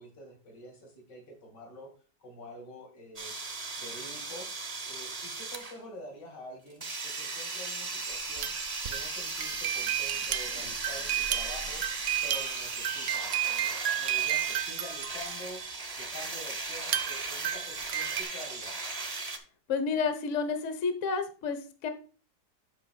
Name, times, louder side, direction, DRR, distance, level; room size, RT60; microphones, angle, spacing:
voice 1, 0.0-1.9 2.2-3.3 3.8-8.5 8.9-11.9 12.2-18.9, equal, 80° left, 2 dB, 2.7 m, -47 dB
sound 1, 3.2-5.8 6.8-19.4, right 3 dB, 30° right, 0.8 m, -37 dB
sound 2, 8.1-15.7 16.8-18.2, right 12 dB, 65° right, 0.8 m, -33 dB
voice 2, 19.7-21.9, left 5 dB, 50° left, 9 dB, 1.1 m, -30 dB
8.4 x 5.5 x 4.2 m, 0.38 s
omnidirectional pair, 1.8 m